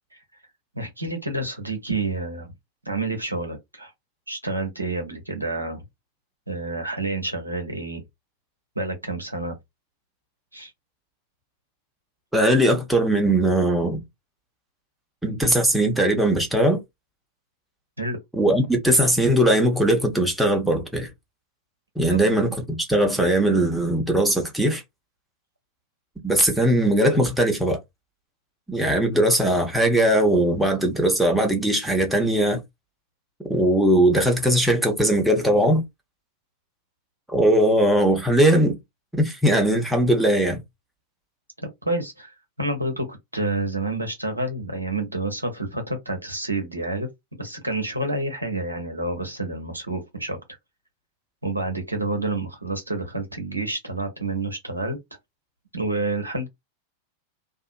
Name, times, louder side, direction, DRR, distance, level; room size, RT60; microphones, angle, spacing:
voice 1, 0.7-2.5 2.8-3.9 4.3-5.8 6.5-8.0 8.8-9.6 10.5-10.7 18.0-18.2 22.1-22.2 22.5-22.6 41.6-47.1 47.4-50.4 51.4-55.0 55.7-56.5, right 2 dB, 80° right, 0.7 m, -29 dB
voice 2, 12.3-14.0 15.2-16.8 18.3-21.1 22.0-24.8 26.2-27.8 28.7-32.6 33.5-35.8 37.3-38.8 39.1-40.6, right 1 dB, 5° right, 0.9 m, -20 dB
2.7 x 2.4 x 2.4 m
figure-of-eight pair, 90°, 0 cm